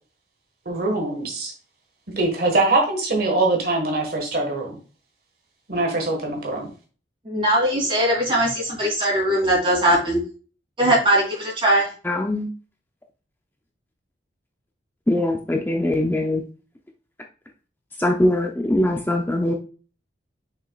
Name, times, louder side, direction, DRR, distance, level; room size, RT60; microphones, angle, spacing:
voice 1, 0.6-1.5 2.2-4.8 5.7-6.7, right 2 dB, 55° right, 1 dB, 1.7 m, -23 dB
voice 2, 7.2-10.2 10.8-11.9, right 1 dB, 30° right, -2 dB, 3.2 m, -20 dB
voice 3, 12.1-12.5 15.1-16.4 18.0-19.5, left 1 dB, 10° left, 2 dB, 0.6 m, -22 dB
6.3 x 6.2 x 2.4 m, 0.38 s
head